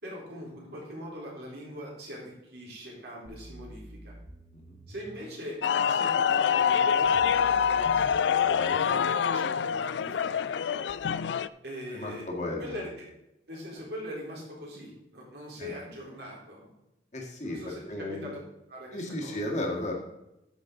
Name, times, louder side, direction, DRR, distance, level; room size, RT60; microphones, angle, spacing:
voice 1, 0.0-4.1 4.9-5.6 5.9-10.5 11.6-12.3 12.6-13.1 13.5-16.7 17.4-18.4 18.7-19.4, equal, 70° right, -3 dB, 4.0 m, -42 dB
sound 1, 3.3-5.2 7.1-9.1 10.9-11.0, right 1 dB, 30° right, 0.9 m, -48 dB
sound 2, 5.6-11.5, left 7 dB, 85° left, 0.4 m, -25 dB
voice 2, 11.9-12.6 15.6-15.7 17.1-17.6 17.9-18.3 18.9-19.9, left 1 dB, 40° left, -1 dB, 2.0 m, -34 dB
10.5 x 7.7 x 3.9 m, 0.90 s
head